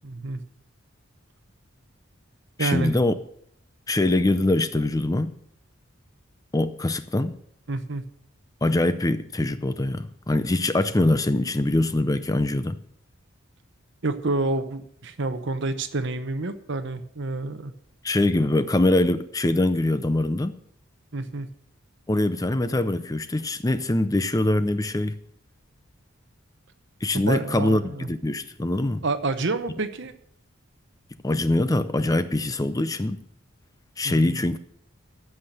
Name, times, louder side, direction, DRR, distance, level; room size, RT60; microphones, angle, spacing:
voice 1, 0.0-0.4 2.6-2.9 7.7-8.0 14.0-17.7 21.1-21.5 27.1-28.1 29.0-30.1 34.0-34.4, right 2 dB, 60° right, 0.9 m, -28 dB
voice 2, 2.6-3.1 3.9-5.4 6.5-7.4 8.6-12.8 18.0-20.6 22.1-25.2 27.0-27.8 28.1-29.0 31.2-33.2 34.0-34.6, left 2 dB, 15° left, 0.5 m, -23 dB
15.0 x 5.8 x 6.6 m
head